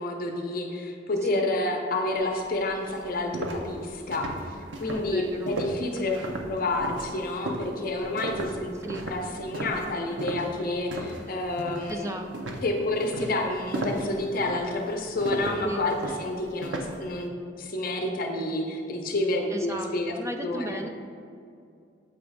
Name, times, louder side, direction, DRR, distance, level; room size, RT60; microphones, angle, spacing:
voice 1, 0.0-8.7 9.1-12.1 12.6-17.3 17.6-20.8, left 2 dB, 50° left, 2 dB, 0.6 m, -29 dB
sound 1, 2.3-2.4 2.8-11.3 11.6-12.0 12.3-17.0, right 1 dB, 75° right, 0.7 m, -35 dB
voice 2, 4.9-5.6 5.9-6.4 8.8-9.1 11.9-12.6 15.6-15.9 19.5-20.9, right 2 dB, 15° right, 4 dB, 0.4 m, -36 dB
7.8 x 3.0 x 4.9 m, 2.4 s
head